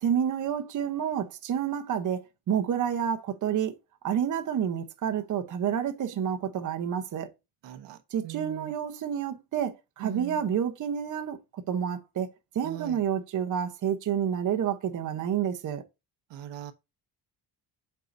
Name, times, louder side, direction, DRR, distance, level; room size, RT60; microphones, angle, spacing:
voice 1, 0.0-3.8 4.0-7.3 8.1-12.3 12.5-15.8, right 8 dB, 45° right, 0.9 m, -29 dB
voice 2, 7.6-8.0 8.2-8.7 10.0-10.4 12.6-13.0 16.3-16.7, right 13 dB, 80° right, 1.0 m, -39 dB
8.0 x 4.6 x 2.6 m
cardioid pair, 165°, 42 cm